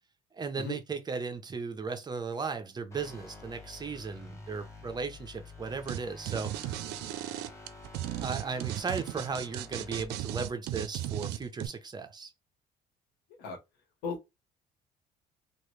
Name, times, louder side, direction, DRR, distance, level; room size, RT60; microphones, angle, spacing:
voice 1, 0.3-6.9 8.2-12.3, right 5 dB, 25° right, 0.6 m, -36 dB
sound 1, 2.9-10.1, left 2 dB, 15° left, 1.0 m, -49 dB
sound 2, 5.9-6.0 6.3-11.7, right 13 dB, 85° right, 0.4 m, -35 dB
voice 2, 14.0-14.3, left 4 dB, 90° left, 1.1 m, -36 dB
3.0 x 2.4 x 3.1 m
cardioid pair, 110°, 17 cm